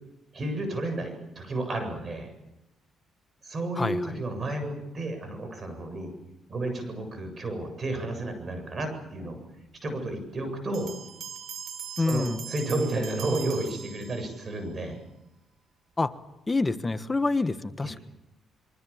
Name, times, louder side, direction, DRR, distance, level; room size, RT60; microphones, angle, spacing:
voice 1, 0.3-2.3 3.4-6.1 6.5-9.4 9.8-10.9 12.0-15.0 17.8-17.9, right 2 dB, 40° right, 7 dB, 7.8 m, -32 dB
voice 2, 3.8-4.1 12.0-12.4 16.0-16.1 16.5-18.0, left 3 dB, 20° left, 11 dB, 1.3 m, -27 dB
sound 1, 10.7-14.5, right 8 dB, 75° right, 3.8 m, -41 dB
26.0 x 23.5 x 7.3 m, 0.90 s
cardioid pair, 90°, 0 cm